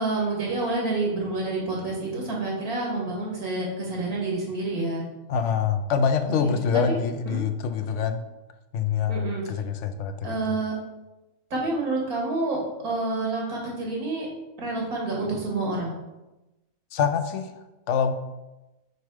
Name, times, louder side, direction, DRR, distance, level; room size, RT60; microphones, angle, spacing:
voice 1, 0.0-5.0 6.2-7.0 7.3-7.4 9.1-9.4 10.2-10.7 11.5-12.6 12.8-14.3 14.6-16.0, right 2 dB, 85° right, -2 dB, 2.2 m, -28 dB
voice 2, 5.3-8.3 8.7-10.1 16.9-18.1, left 6 dB, 65° left, 8 dB, 0.8 m, -25 dB
5.4 x 4.7 x 4.7 m, 1.0 s
omnidirectional pair, 1.5 m